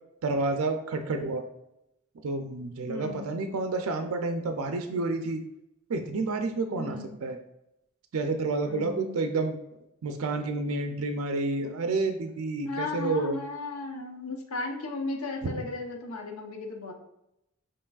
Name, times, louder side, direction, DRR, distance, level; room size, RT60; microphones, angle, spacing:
voice 1, 0.2-1.4 2.2-5.4 5.9-7.4 8.1-9.6 10.0-13.4 15.4-15.5, right 3 dB, 80° right, 6 dB, 0.4 m, -29 dB
voice 2, 2.9-3.4 6.7-7.2 8.6-9.2 12.7-16.9, left 3 dB, 90° left, 3 dB, 0.8 m, -35 dB
6.9 x 3.0 x 2.3 m, 0.86 s
head